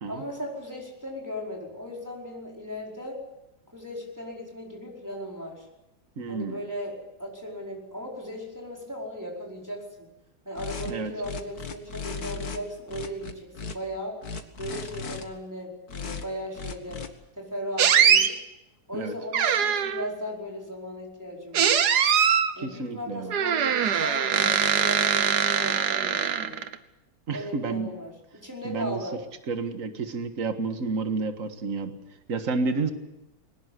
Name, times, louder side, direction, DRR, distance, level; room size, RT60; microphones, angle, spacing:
voice 1, 0.1-3.2 3.7-5.7 6.3-10.1 10.4-13.3 13.6-14.2 14.6-17.0 17.3-18.4 18.9-21.8 22.5-26.6 27.3-29.2, equal, 10° right, -2 dB, 4.9 m, -37 dB
voice 2, 6.2-6.6 10.9-11.1 18.9-19.1 22.6-23.3 27.3-27.9 28.6-29.0 29.5-31.9 32.3-32.9, right 4 dB, 50° right, 8 dB, 2.0 m, -30 dB
sound 1, 10.6-10.9 11.2-12.6 12.9-13.7 14.2-15.2 15.9-16.2 16.5-17.1, left 5 dB, 60° left, 2.1 m, -36 dB
sound 2, 17.8-18.3 19.3-20.1 21.5-22.5 23.3-26.8, right 8 dB, 70° right, 1.7 m, -22 dB
21.5 x 19.0 x 8.2 m, 0.93 s
omnidirectional pair, 1.8 m